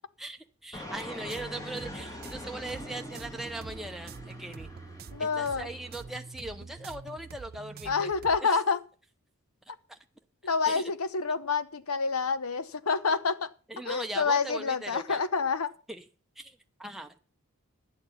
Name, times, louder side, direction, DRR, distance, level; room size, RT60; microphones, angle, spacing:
voice 1, 0.2-4.7 5.2-8.1 8.4-8.5 9.9-10.0 10.7-10.8 13.7-15.2 15.9-16.0 16.4-17.2, right 2 dB, ahead, 0.8 m, -40 dB
Fixed-wing aircraft airplane, 0.7-6.1, left 1 dB, 15° left, 1.9 m, -44 dB
sound 1, 1.2-8.4, right 4 dB, 45° right, 0.5 m, -46 dB
voice 2, 5.1-5.7 7.9-8.8 10.4-13.5 13.8-15.7, left 5 dB, 70° left, 0.9 m, -28 dB
12.0 x 8.8 x 5.7 m
head